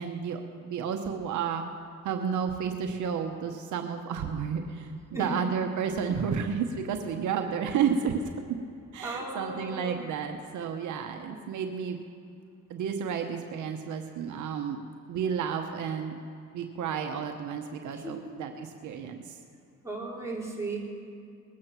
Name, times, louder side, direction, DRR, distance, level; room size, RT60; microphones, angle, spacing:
voice 1, 0.0-1.6 2.0-8.2 8.5-8.6 8.9-12.0 12.7-14.8 15.1-16.2 16.5-19.2, right 7 dB, 75° right, 5 dB, 1.1 m, -31 dB
voice 2, 5.1-5.5 9.0-10.0 17.9-18.3 19.8-20.8, right 2 dB, 10° right, -5 dB, 3.9 m, -36 dB
21.0 x 8.6 x 5.9 m, 2.5 s
cardioid pair, 90°, 30 cm